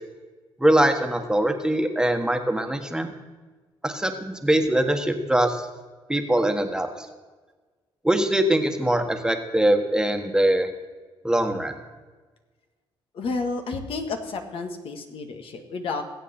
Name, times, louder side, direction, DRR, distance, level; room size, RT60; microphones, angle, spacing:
voice 1, 0.6-3.1 3.8-5.7 6.1-7.1 8.0-10.7 11.2-11.7, right 1 dB, 5° right, 5 dB, 1.5 m, -22 dB
voice 2, 13.1-16.0, left 3 dB, 70° left, 5 dB, 1.7 m, -31 dB
21.0 x 8.2 x 4.4 m, 1.3 s
cardioid pair, 90°, 10 cm